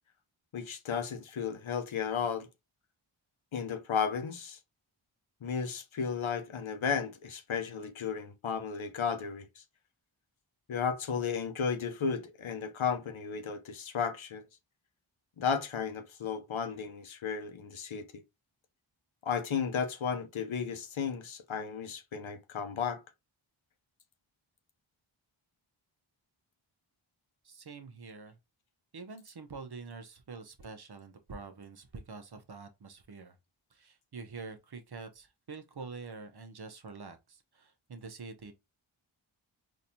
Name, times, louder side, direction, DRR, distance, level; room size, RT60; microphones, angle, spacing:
voice 1, 0.5-2.5 3.5-4.6 5.4-9.6 10.7-14.4 15.4-18.2 19.2-23.0, left 6 dB, 70° left, 0.8 m, -34 dB
voice 2, 27.4-28.4 28.9-33.4 33.7-38.5, right 4 dB, 50° right, 0.8 m, -46 dB
4.0 x 2.7 x 2.8 m
cardioid pair, 40°, 50 cm